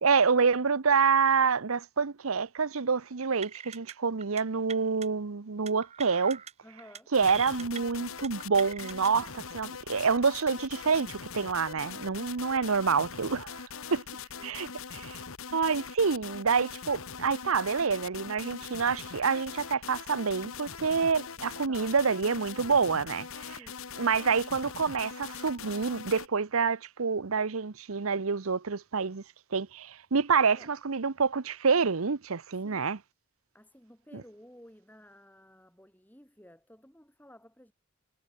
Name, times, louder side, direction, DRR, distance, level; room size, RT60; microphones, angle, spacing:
voice 1, 0.0-6.4 7.1-13.7 13.9-14.0 14.4-14.7 14.9-15.2 15.5-23.6 24.0-29.2 29.5-33.0, right 5 dB, 85° right, 0.9 m, -27 dB
sound 1, 3.4-3.9 4.2-4.4 4.7-5.1 5.7-6.5 6.8-7.0 7.3-7.8 8.2-9.1, right 7 dB, 30° right, 1.7 m, -42 dB
voice 2, 6.6-7.1 11.7-11.9 14.1-15.2 21.7-22.0 23.6-23.8 30.5-30.7 32.5-33.0 33.5-37.7, equal, 10° left, 5.2 m, -55 dB
sound 2, 7.1-26.3, left 6 dB, 80° left, 1.3 m, -42 dB
head